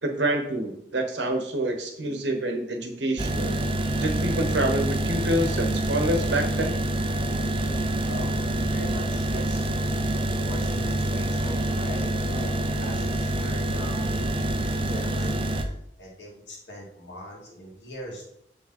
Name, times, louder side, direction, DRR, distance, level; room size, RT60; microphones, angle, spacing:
voice 1, 0.0-3.5 4.0-6.8, right 1 dB, 80° right, 4 dB, 1.2 m, -27 dB
sound 1, 3.2-15.6, right 1 dB, 30° right, 0.7 m, -26 dB
voice 2, 8.0-8.4 8.7-9.7 10.3-14.3 14.8-15.4 16.0-18.3, equal, 80° left, -4 dB, 2.7 m, -40 dB
7.0 x 5.3 x 4.2 m, 0.74 s
head